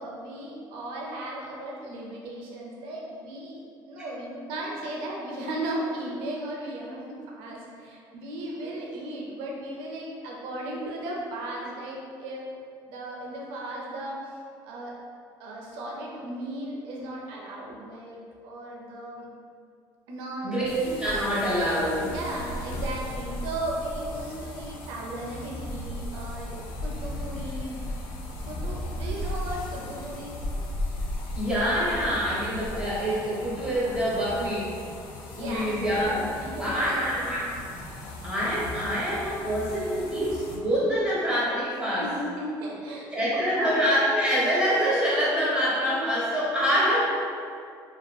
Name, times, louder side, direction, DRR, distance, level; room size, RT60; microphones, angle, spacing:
voice 1, 0.0-12.4 12.9-14.9 15.4-19.3 20.1-20.7 22.0-27.8 28.3-30.4 35.3-35.7 36.4-37.5 41.7-43.7, right 1 dB, 85° right, -3 dB, 0.5 m, -36 dB
voice 2, 20.4-22.1 31.3-34.7 35.4-36.2 36.6-37.4 38.2-42.1 43.1-47.1, equal, 10° right, -9 dB, 0.8 m, -25 dB
sound 1, 20.6-40.6, left 1 dB, 75° left, 0.4 m, -36 dB
2.4 x 2.3 x 2.2 m, 2.3 s
cardioid pair, 110°, 9 cm